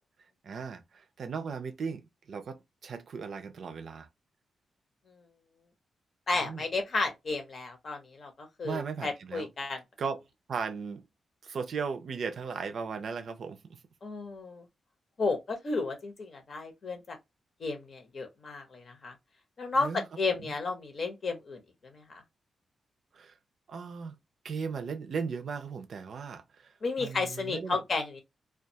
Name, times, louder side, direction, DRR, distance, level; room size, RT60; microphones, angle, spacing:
voice 1, 0.4-4.1 6.4-6.6 8.6-9.5 10.0-10.2 10.5-11.0 11.4-13.6 19.8-20.1 20.4-20.5 23.1-23.3 23.7-24.2 24.4-27.8, right 5 dB, 65° right, 0.4 m, -37 dB
voice 2, 6.3-9.8 14.0-14.6 15.2-17.2 17.6-19.1 19.6-19.9 20.2-21.6 26.8-28.2, left 3 dB, 55° left, 0.8 m, -32 dB
2.3 x 2.2 x 2.7 m
cardioid pair, 80°, 0 cm